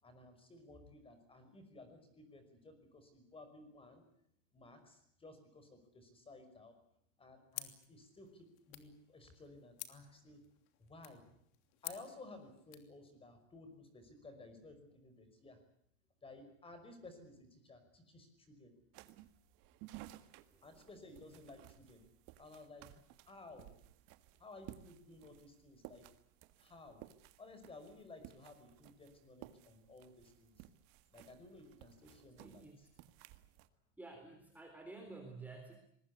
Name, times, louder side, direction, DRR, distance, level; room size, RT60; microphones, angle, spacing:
voice 1, 0.0-4.0 4.5-6.7 7.2-10.4 10.8-11.2 11.8-15.6 16.2-18.7 20.6-22.0 22.4-23.7 24.4-26.0 26.6-27.0 27.4-30.7 31.1-32.7, left 2 dB, 15° left, 9 dB, 5.4 m, -56 dB
sound 1, 7.5-12.9, left 15 dB, 60° left, 3.1 m, -52 dB
sound 2, 18.9-33.7, right 15 dB, 50° right, 1.8 m, -58 dB
voice 2, 20.4-20.9 32.4-32.9 34.0-35.7, right 3 dB, 5° right, 3 dB, 3.6 m, -52 dB
24.5 x 21.0 x 8.4 m, 0.69 s
supercardioid pair, 150°, 39 cm